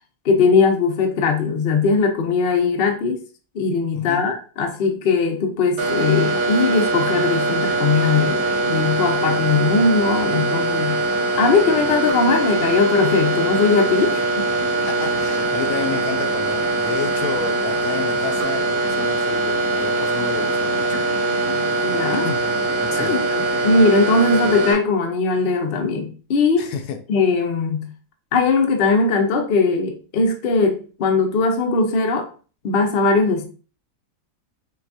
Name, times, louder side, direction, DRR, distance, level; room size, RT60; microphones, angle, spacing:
voice 1, 0.2-3.2 3.5-11.0 11.4-14.5 20.9-21.0 21.5-22.3 23.0-26.7 27.1-27.9 28.3-32.3 32.6-33.4, left 4 dB, 55° left, 0.6 m, -19 dB
voice 2, 3.9-4.2 14.9-21.0 21.3-21.7 22.2-22.5 22.7-23.2 26.6-27.0, left 7 dB, 80° left, 1.1 m, -31 dB
sound 1, 5.8-24.7, right 2 dB, 80° right, 1.6 m, -22 dB
5.8 x 2.4 x 2.6 m
omnidirectional pair, 1.7 m